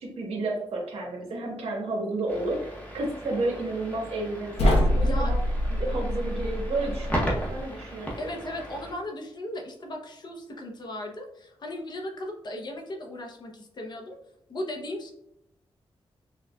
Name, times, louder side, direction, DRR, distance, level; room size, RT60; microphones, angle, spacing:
voice 1, 0.0-5.4 5.7-8.1, right 2 dB, 80° right, -1 dB, 1.2 m, -31 dB
sound 1, 2.3-8.9, equal, 15° left, 0.8 m, -36 dB
sound 2, 4.6-7.6, equal, 85° left, 0.7 m, -25 dB
voice 2, 8.2-14.2 14.5-15.1, left 1 dB, 45° left, 2 dB, 0.6 m, -36 dB
6.2 x 2.3 x 2.3 m, 0.78 s
wide cardioid pair, 175°, 10 cm